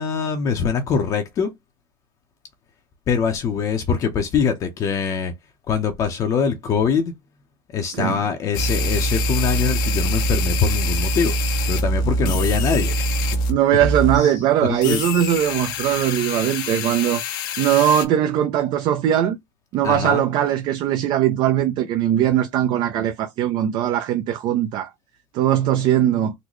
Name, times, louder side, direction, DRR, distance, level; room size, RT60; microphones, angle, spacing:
voice 1, 0.0-1.5 3.1-5.3 5.7-7.1 7.7-11.4 11.7-13.0 14.1-14.3 14.6-15.0 19.8-20.2, left 6 dB, 30° left, 0.7 m, -23 dB
sound 1, 8.5-13.5 13.8-14.2 14.8-18.0, equal, 85° left, 1.0 m, -24 dB
voice 2, 13.5-17.2 17.6-19.4 19.7-24.9 25.3-26.3, right 11 dB, 45° right, 0.5 m, -20 dB
3.9 x 2.1 x 3.0 m
cardioid pair, 150°, 11 cm